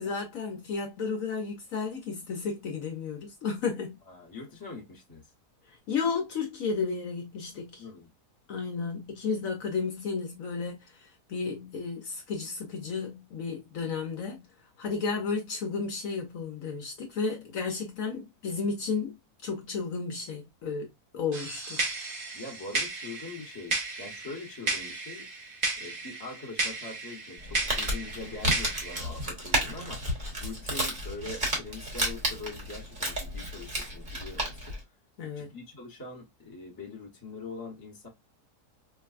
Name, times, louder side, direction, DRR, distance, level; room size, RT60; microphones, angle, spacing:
voice 1, 0.0-4.0 5.9-7.9 8.5-14.4 14.8-19.1 19.4-21.8 35.2-35.5, left 5 dB, 65° left, 1.1 m, -33 dB
voice 2, 4.1-5.2 7.8-8.1 22.3-25.3 25.8-30.0 30.4-34.7 35.4-38.1, left 3 dB, 15° left, 1.0 m, -43 dB
sound 1, 21.3-29.0, right 3 dB, 50° right, 0.5 m, -34 dB
Crumpling crinkling, 27.4-34.8, right 1 dB, 30° right, 1.3 m, -32 dB
4.6 x 2.2 x 2.4 m
omnidirectional pair, 1.6 m